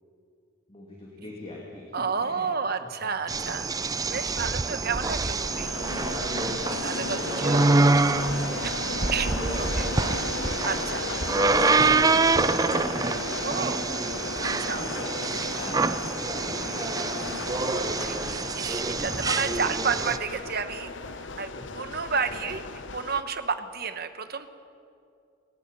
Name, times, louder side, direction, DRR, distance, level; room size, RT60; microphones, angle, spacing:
voice 1, 0.7-2.5 2.8-2.9 3.5-3.8 6.6-7.8 8.0-8.6 9.3-9.6 9.9-10.1 10.8-13.8 15.2-17.6 18.9-19.4 21.5-21.6 22.3-22.5, left 2 dB, 30° left, -3 dB, 2.6 m, -42 dB
voice 2, 1.9-3.6 4.1-5.7 6.8-7.7 9.1-9.9 10.6-11.1 13.4-13.8 14.4-14.9 17.8-20.9 21.2-22.6 22.9-24.5, right 5 dB, 50° right, 9 dB, 1.2 m, -31 dB
sound 1, 3.3-20.2, right 3 dB, 20° right, 0.4 m, -26 dB
sound 2, 5.2-23.2, left 3 dB, 60° left, 0.9 m, -35 dB
29.0 x 16.5 x 5.5 m, 2.5 s
head